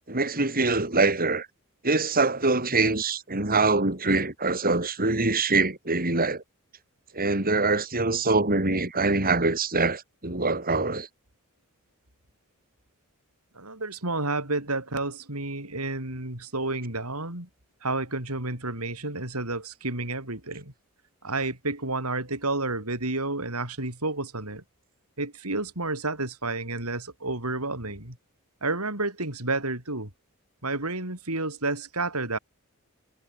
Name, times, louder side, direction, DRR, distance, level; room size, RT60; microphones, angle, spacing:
voice 1, 0.1-1.5 1.8-6.4 7.1-11.1, right 3 dB, 40° right, 4.9 m, -24 dB
voice 2, 13.5-17.5 17.8-20.7 21.2-24.6 25.2-28.2 28.6-30.1 30.6-32.4, right 2 dB, 90° right, 7.2 m, -30 dB
head